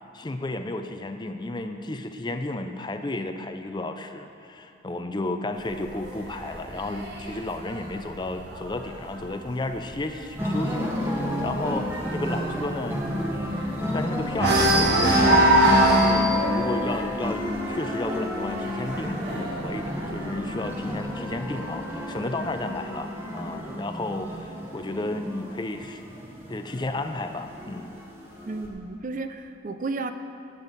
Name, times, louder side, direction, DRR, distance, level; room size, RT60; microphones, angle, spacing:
voice 1, 0.1-13.0 13.3-26.0 26.5-27.9, left 2 dB, 25° left, 7 dB, 0.5 m, -33 dB
sound 1, 5.6-9.2 9.6-9.9 10.2-10.3 10.7-14.0 14.3-20.9 21.7-22.7, right 1 dB, 60° right, 1.9 m, -24 dB
sound 2, 10.3-28.7, equal, 15° right, 1.5 m, -32 dB
voice 2, 28.5-30.1, right 3 dB, 45° right, 8 dB, 0.5 m, -32 dB
17.5 x 8.3 x 4.1 m, 2.8 s
head